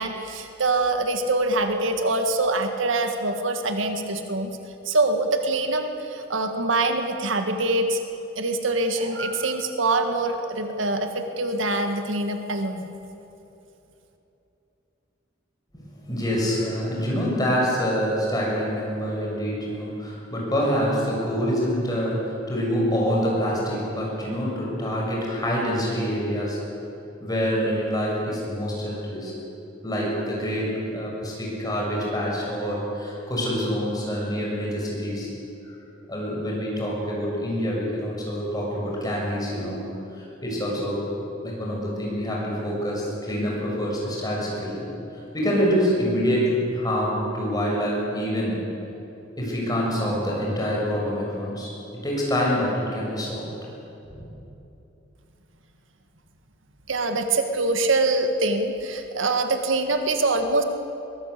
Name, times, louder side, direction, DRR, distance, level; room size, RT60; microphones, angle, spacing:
voice 1, 0.0-4.5 4.9-8.0 8.4-12.9 56.9-60.6, right 2 dB, 90° right, 6 dB, 1.8 m, -24 dB
voice 2, 16.0-26.6 27.2-29.3 29.6-35.3 36.1-39.8 40.1-41.2 41.4-44.8 45.3-48.6 49.4-53.5 54.1-54.3, equal, 20° left, -3 dB, 6.8 m, -26 dB
22.5 x 18.5 x 8.4 m, 3.0 s
head